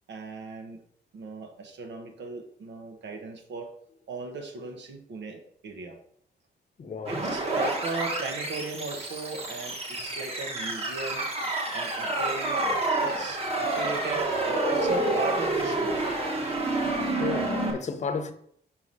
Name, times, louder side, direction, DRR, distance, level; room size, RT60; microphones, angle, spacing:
voice 1, 0.1-0.8 1.1-3.7 4.1-6.0 7.1-11.2 11.7-12.6 13.0-16.0, right 3 dB, 80° right, 1.2 m, -37 dB
voice 2, 6.8-7.2 17.2-18.3, left 5 dB, 40° left, 0.8 m, -33 dB
sound 1, 7.1-17.7, right 2 dB, 35° right, 1.4 m, -28 dB
5.7 x 4.7 x 5.5 m
wide cardioid pair, 155°, 18 cm